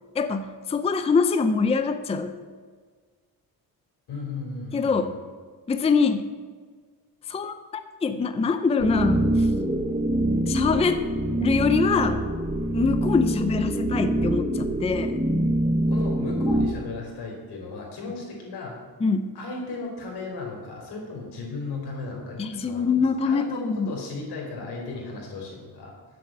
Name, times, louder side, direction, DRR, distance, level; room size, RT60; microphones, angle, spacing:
voice 1, 0.2-2.3 4.7-5.1 5.7-6.3 7.3-7.6 8.0-9.5 10.5-11.0 11.4-12.2 12.7-15.1 19.0-19.3 22.4-23.9, left 4 dB, 15° left, 9 dB, 0.5 m, -24 dB
voice 2, 4.1-5.1 15.9-18.8 19.3-25.9, left 3 dB, 85° left, -1 dB, 4.3 m, -35 dB
sound 1, 8.8-16.7, right 1 dB, 15° right, 0.8 m, -24 dB
10.0 x 7.8 x 7.7 m, 1.5 s
cardioid pair, 160°, 38 cm